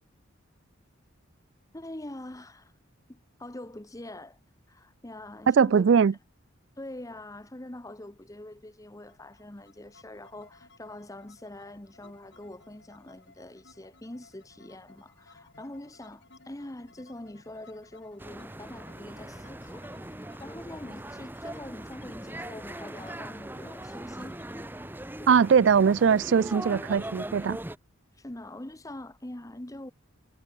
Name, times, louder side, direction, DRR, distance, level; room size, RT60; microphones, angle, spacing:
voice 1, 1.7-2.7 3.1-4.4 4.7-5.9 6.8-19.9 20.4-24.4 25.2-25.5 28.2-29.9, left 1 dB, 15° left, 0.9 m, -44 dB
voice 2, 5.5-6.1 25.3-27.6, right 6 dB, 60° right, 0.3 m, -21 dB
sound 1, 9.1-26.8, left 3 dB, 55° left, 4.0 m, -59 dB
sound 2, 18.2-27.8, right 1 dB, 10° right, 1.1 m, -40 dB
head